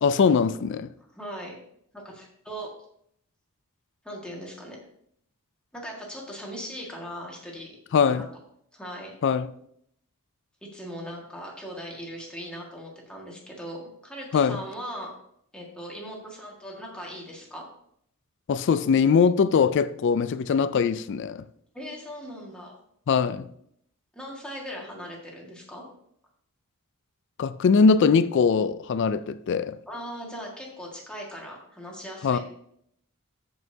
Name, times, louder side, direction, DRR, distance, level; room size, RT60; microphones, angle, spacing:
voice 1, 0.0-0.9 7.9-8.3 9.2-9.5 14.3-14.6 18.5-21.4 23.1-23.5 27.4-29.8 32.2-32.4, left 5 dB, 55° left, 0.3 m, -21 dB
voice 2, 1.1-1.6 1.9-2.7 4.0-4.8 5.7-7.8 8.2-8.3 8.7-9.2 10.7-15.1 15.5-17.7 21.7-22.8 24.1-25.8 29.9-32.4, equal, 5° left, 1.8 m, -39 dB
13.5 x 5.5 x 2.8 m
head